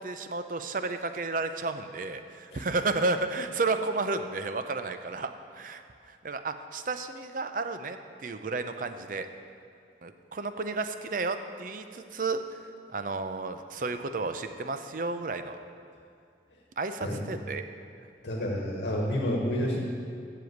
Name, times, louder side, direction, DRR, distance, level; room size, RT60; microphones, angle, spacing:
voice 1, 0.0-9.3 10.0-12.6 12.9-15.6 16.8-17.6, right 3 dB, 50° right, 9 dB, 0.5 m, -32 dB
voice 2, 18.2-19.8, equal, 75° left, -1 dB, 1.3 m, -29 dB
7.8 x 6.9 x 8.0 m, 2.4 s
head